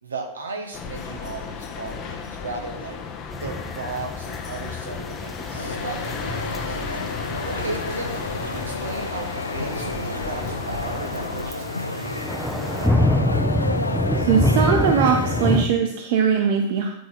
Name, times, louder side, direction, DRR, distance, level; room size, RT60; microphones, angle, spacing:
voice 1, 0.0-3.0 3.4-6.8 7.4-13.2, right 3 dB, 75° right, 2 dB, 1.3 m, -35 dB
sound 1, 0.7-11.5, left 6 dB, 35° left, 0.9 m, -34 dB
sound 2, 3.3-15.7, left 1 dB, ahead, 0.8 m, -26 dB
sound 3, 5.5-15.6, left 2 dB, 80° left, 0.3 m, -31 dB
voice 2, 14.2-16.9, right 6 dB, 50° right, 4 dB, 0.6 m, -20 dB
9.1 x 4.4 x 3.9 m, 0.81 s
figure-of-eight pair, 90°, 0 cm